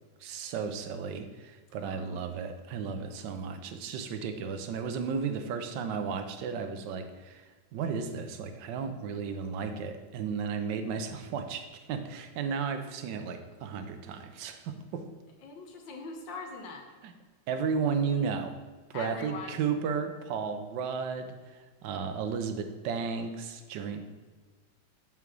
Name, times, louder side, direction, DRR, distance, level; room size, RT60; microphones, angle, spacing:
voice 1, 0.2-7.4 7.7-15.0 17.0-17.1 17.5-18.5 18.9-24.0, right 6 dB, 70° right, 7 dB, 1.3 m, -34 dB
voice 2, 1.9-2.2 15.4-16.9 18.9-19.6, left 4 dB, 70° left, 2 dB, 1.7 m, -41 dB
5.6 x 4.7 x 6.1 m, 1.4 s
omnidirectional pair, 2.2 m